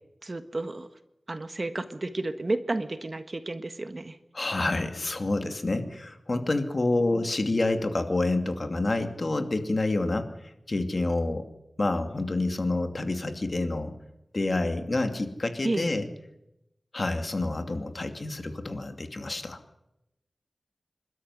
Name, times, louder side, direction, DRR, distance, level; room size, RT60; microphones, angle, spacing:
voice 1, 0.2-0.9 1.3-4.2 15.6-15.9, right 2 dB, 40° right, 10 dB, 1.5 m, -31 dB
voice 2, 4.3-10.3 10.7-11.5 11.8-13.9 14.3-16.1 16.9-19.6, left 2 dB, 45° left, 7 dB, 2.5 m, -28 dB
27.5 x 13.0 x 9.7 m, 0.88 s
wide cardioid pair, 90°, 0 cm